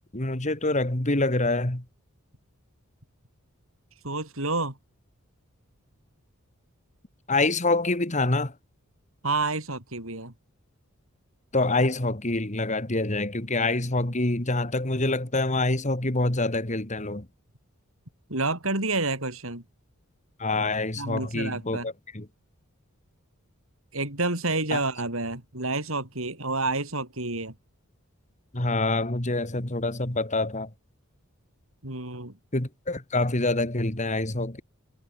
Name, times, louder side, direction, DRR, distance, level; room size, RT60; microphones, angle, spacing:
voice 1, 0.1-1.8 7.3-8.5 11.5-17.3 20.4-22.3 24.7-24.8 28.5-30.7 32.5-34.6, left 2 dB, 35° left, 2.3 m, -26 dB
voice 2, 4.0-4.7 9.2-10.3 18.3-19.6 21.0-21.9 23.9-27.5 31.8-32.4, right 3 dB, 70° right, 6.7 m, -29 dB
head